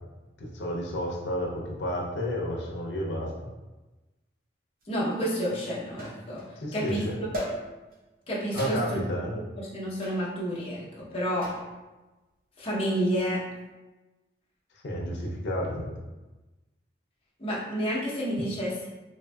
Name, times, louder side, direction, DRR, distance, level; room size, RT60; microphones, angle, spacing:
voice 1, 0.4-3.3 6.6-7.2 8.5-9.4 14.8-15.9, equal, 90° left, -2 dB, 0.5 m, -31 dB
sound 1, 4.8-4.9 6.0-6.6 7.3-8.0 8.6-9.1 10.0-10.3 11.4-11.8 13.0-13.4, equal, 50° right, 0.7 m, -37 dB
voice 2, 4.9-6.4 6.7-7.0 8.3-9.0 9.6-11.5 12.6-13.4 17.4-18.9, equal, 35° left, -7 dB, 0.7 m, -30 dB
3.5 x 2.6 x 2.2 m, 1.1 s
head